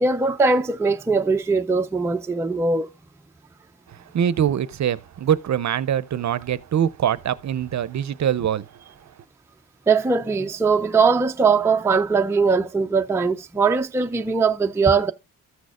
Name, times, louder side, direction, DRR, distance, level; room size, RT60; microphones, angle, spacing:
voice 1, 0.0-2.9 9.9-15.1, right 4 dB, 10° right, 0.4 m, -20 dB
voice 2, 3.9-8.7, right 9 dB, 55° right, 0.6 m, -23 dB
14.0 x 6.4 x 2.4 m
wide cardioid pair, 160°, 34 cm